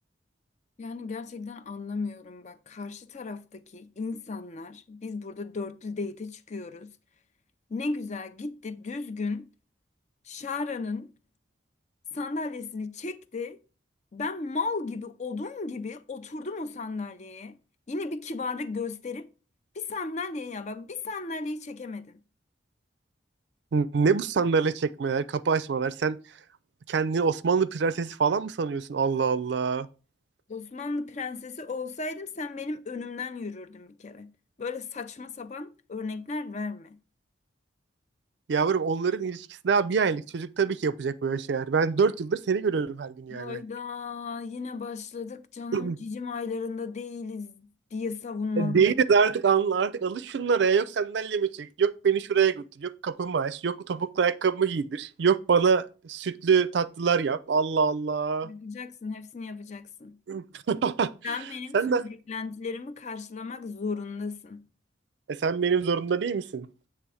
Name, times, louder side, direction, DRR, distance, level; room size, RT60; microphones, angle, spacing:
voice 1, 0.8-6.9 7.7-9.5 10.2-11.1 12.1-13.6 14.1-17.6 17.9-19.3 19.7-22.2 30.5-34.3 34.6-37.0 43.3-48.8 58.4-60.2 61.2-64.6, left 4 dB, 40° left, 0.5 m, -35 dB
voice 2, 23.7-26.2 26.9-29.9 38.5-43.6 45.7-46.0 48.6-58.5 60.3-61.1 61.7-62.0 65.3-66.7, right 5 dB, 65° right, 0.4 m, -25 dB
8.1 x 3.4 x 4.8 m
head